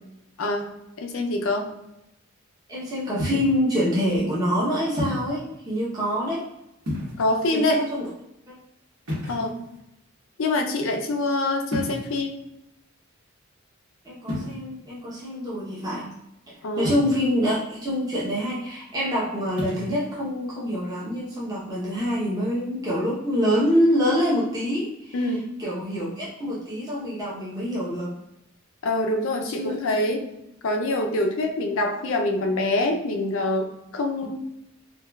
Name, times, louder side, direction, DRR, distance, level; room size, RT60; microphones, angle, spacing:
voice 1, 0.4-0.7 1.0-1.7 7.2-7.9 9.3-9.5 10.4-12.4 16.6-17.0 25.1-25.5 28.8-30.3 30.6-34.4, left 2 dB, 65° left, 3 dB, 0.4 m, -25 dB
voice 2, 2.7-6.4 7.5-8.1 8.5-8.6 9.3-9.6 14.0-16.1 16.8-25.2 25.6-28.1 29.5-29.7 34.2-34.3, equal, 15° right, -7 dB, 0.7 m, -26 dB
sound 1, 3.2-3.6 5.0-5.4 6.8-7.4 9.1-9.8 11.7-12.2 14.2-14.5 16.8-17.4 19.5-19.9, left 1 dB, 80° right, 1.3 m, -31 dB
4.2 x 2.3 x 2.2 m, 0.88 s
head